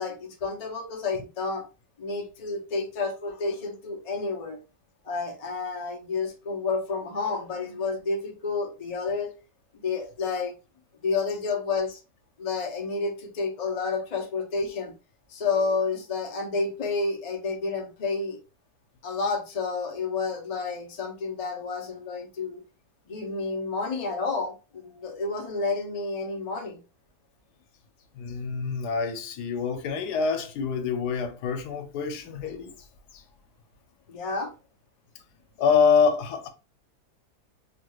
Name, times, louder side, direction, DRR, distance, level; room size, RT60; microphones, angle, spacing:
voice 1, 0.0-1.6 2.0-4.6 5.0-9.3 9.8-10.5 11.0-12.0 12.4-14.9 15.3-18.4 19.0-22.6 23.1-26.8 34.1-34.5, left 4 dB, 50° left, 0.4 m, -30 dB
voice 2, 28.1-32.7 33.1-33.2 35.6-36.5, left 6 dB, 85° left, 1.2 m, -25 dB
2.9 x 2.3 x 3.0 m
omnidirectional pair, 1.7 m